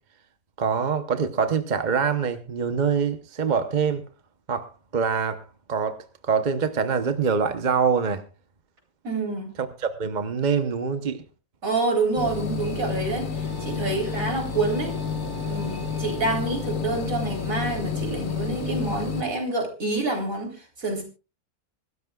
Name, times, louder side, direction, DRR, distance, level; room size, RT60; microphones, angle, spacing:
voice 1, 0.6-4.0 4.5-5.4 5.7-6.0 6.2-8.2 9.6-11.2, right 6 dB, 35° right, 0.9 m, -24 dB
voice 2, 9.0-9.6 11.6-14.9 15.5-20.5 20.8-21.0, right 3 dB, 60° right, 4.2 m, -27 dB
sound 1, 12.2-19.2, left 5 dB, 60° left, 1.8 m, -30 dB
sound 2, 13.3-17.0, right 2 dB, 85° right, 5.2 m, -47 dB
25.5 x 13.0 x 2.4 m
omnidirectional pair, 1.6 m